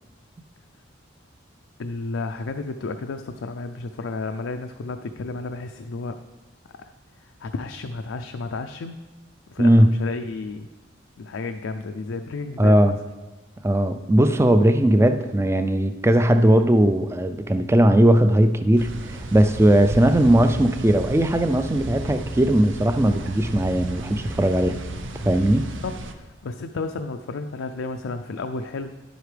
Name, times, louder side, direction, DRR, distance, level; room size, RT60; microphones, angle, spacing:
voice 1, 1.8-6.2 6.8-6.9 7.2-9.0 9.5-10.7 11.2-13.0 25.8-25.9 26.2-28.9, left 3 dB, 85° left, 7 dB, 0.4 m, -32 dB
voice 2, 9.6-10.0 12.6-12.9 13.6-24.8 25.3-25.7, right 1 dB, 15° right, 9 dB, 0.3 m, -18 dB
sound 1, 18.8-26.1, right 1 dB, 80° right, 0.7 m, -33 dB
10.5 x 8.0 x 3.3 m, 1.2 s
head